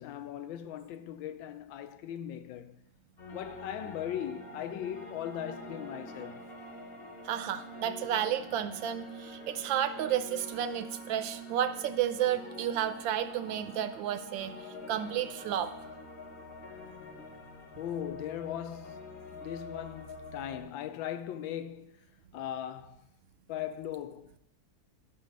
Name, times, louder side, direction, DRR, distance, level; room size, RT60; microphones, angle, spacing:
voice 1, 0.0-2.8 3.3-6.5 17.8-19.1 19.3-22.0 22.3-23.1 23.5-24.4, left 10 dB, 80° left, 1.3 m, -39 dB
sound 1, 3.2-20.6, equal, 35° left, 1.2 m, -46 dB
voice 2, 7.2-15.7, right 10 dB, 80° right, 1.3 m, -32 dB
11.5 x 6.2 x 5.3 m
omnidirectional pair, 2.1 m